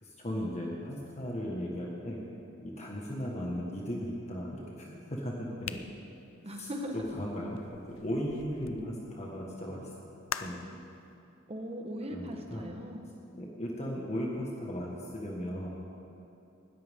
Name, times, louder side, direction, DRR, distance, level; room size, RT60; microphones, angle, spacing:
voice 1, 0.0-2.2 2.6-5.8 6.5-10.6 12.1-12.7 13.3-15.7, equal, 35° left, -3 dB, 1.6 m, -37 dB
sound 1, 5.6-8.9 10.3-10.7, left 8 dB, 75° left, 0.6 m, -43 dB
voice 2, 6.4-7.0 11.5-13.1, equal, 30° right, 3 dB, 1.3 m, -39 dB
19.5 x 14.0 x 3.7 m, 2.7 s
head